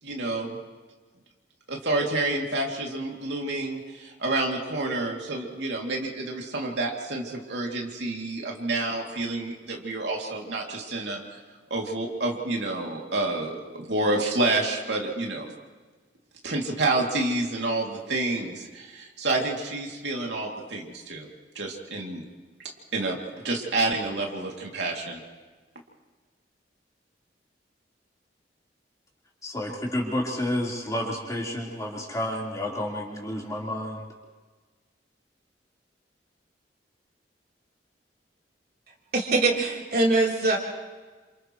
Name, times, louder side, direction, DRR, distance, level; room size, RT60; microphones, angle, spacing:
voice 1, 0.0-0.6 1.7-11.2 11.7-15.5 16.4-21.3 21.5-22.2 22.9-23.2 23.4-25.2, right 2 dB, 75° right, -1 dB, 2.8 m, -29 dB
voice 2, 29.4-34.0, left 1 dB, 20° left, -4 dB, 4.2 m, -30 dB
voice 3, 39.1-40.6, right 2 dB, 55° right, -2 dB, 3.8 m, -22 dB
29.0 x 27.5 x 3.2 m, 1.4 s
head